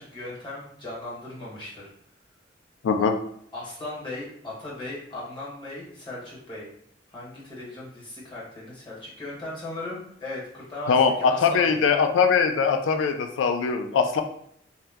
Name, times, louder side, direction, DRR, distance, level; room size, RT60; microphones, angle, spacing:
voice 1, 0.0-1.9 3.5-6.7 7.1-11.8, left 2 dB, 25° left, -7 dB, 1.2 m, -37 dB
voice 2, 2.8-3.2 10.9-14.2, left 5 dB, 85° left, 6 dB, 0.3 m, -21 dB
2.8 x 2.1 x 3.4 m, 0.68 s
head